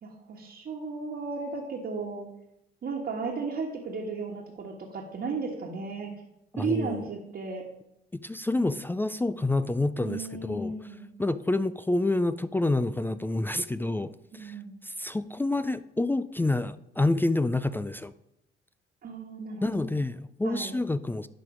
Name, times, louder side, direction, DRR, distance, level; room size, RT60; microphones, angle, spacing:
voice 1, 0.0-2.3 2.8-6.1 6.6-7.6 10.0-11.1 14.4-14.8 19.0-19.9 20.4-20.7, right 4 dB, 55° right, -2 dB, 1.4 m, -34 dB
voice 2, 6.5-7.1 8.1-10.7 11.2-18.1 19.6-21.3, left 2 dB, 10° left, 14 dB, 0.3 m, -28 dB
11.5 x 4.1 x 5.0 m, 0.82 s
cardioid pair, 90°, 20 cm